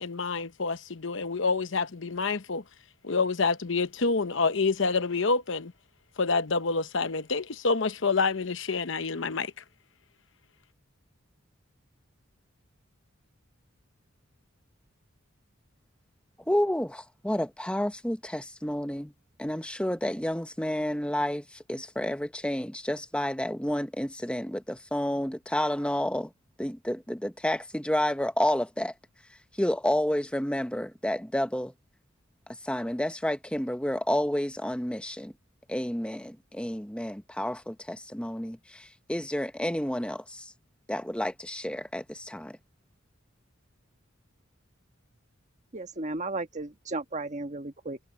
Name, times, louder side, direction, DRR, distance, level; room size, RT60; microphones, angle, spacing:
voice 1, 0.0-2.6 3.0-5.7 6.2-9.5, left 4 dB, 65° left, 0.9 m, -27 dB
voice 2, 16.5-19.1 19.4-26.3 26.6-28.9 29.5-31.7 32.5-35.3 35.7-40.5 40.9-42.6, left 1 dB, 5° left, 1.1 m, -30 dB
voice 3, 45.7-48.0, right 2 dB, 35° right, 1.5 m, -34 dB
head